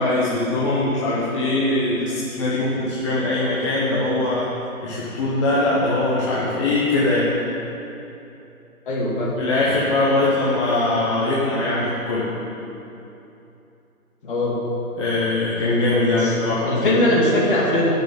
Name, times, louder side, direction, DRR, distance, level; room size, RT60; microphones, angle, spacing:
voice 1, 0.0-4.5 4.8-7.3 9.4-12.3 15.0-17.0, left 2 dB, 20° left, -7 dB, 1.0 m, -21 dB
voice 2, 8.9-9.3 9.7-9.8 14.2-14.5 16.1-16.4 16.6-17.9, left 1 dB, 35° left, -4 dB, 2.6 m, -21 dB
10.5 x 6.8 x 7.9 m, 2.9 s
figure-of-eight pair, 150°, 44 cm